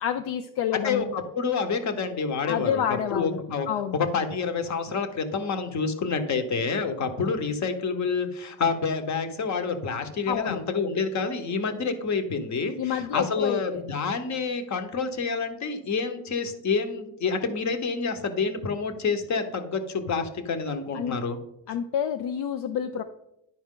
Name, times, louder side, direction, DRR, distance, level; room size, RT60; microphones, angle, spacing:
voice 1, 0.0-1.1 2.5-3.4 3.7-4.0 10.3-10.6 12.8-13.9 20.9-21.2 21.7-23.0, left 9 dB, 75° left, 7 dB, 0.6 m, -28 dB
voice 2, 0.7-2.8 3.1-3.7 3.9-21.4, left 5 dB, 40° left, 8 dB, 1.0 m, -28 dB
11.0 x 4.5 x 3.7 m, 0.86 s
cardioid pair, 105°, 42 cm